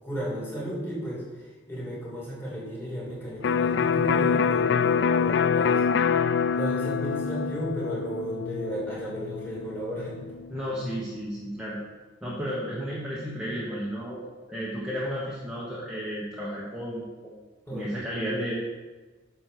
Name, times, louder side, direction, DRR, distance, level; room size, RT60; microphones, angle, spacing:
voice 1, 0.0-5.8 6.5-10.2 17.7-17.9, equal, 10° left, -5 dB, 2.7 m, -34 dB
Electric guitar, 3.4-11.1, left 6 dB, 70° left, 0.3 m, -26 dB
voice 2, 10.5-11.8 12.2-14.2 14.5-17.4 17.7-18.5, equal, 5° right, -7 dB, 1.2 m, -33 dB
9.5 x 4.6 x 6.7 m, 1.3 s
head